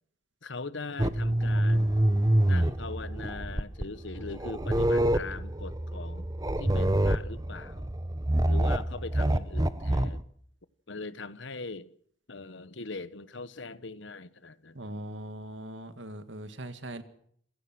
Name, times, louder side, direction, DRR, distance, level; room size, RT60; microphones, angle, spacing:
voice 1, 0.4-1.9 2.4-6.3 6.6-7.9 8.5-10.2 10.9-11.9 12.3-14.7, left 3 dB, 70° left, 1.2 m, -40 dB
The Complaining Corpse, 1.0-10.2, right 1 dB, 20° right, 0.9 m, -27 dB
voice 2, 14.8-17.0, right 1 dB, 75° right, 2.1 m, -40 dB
27.0 x 16.5 x 6.1 m
head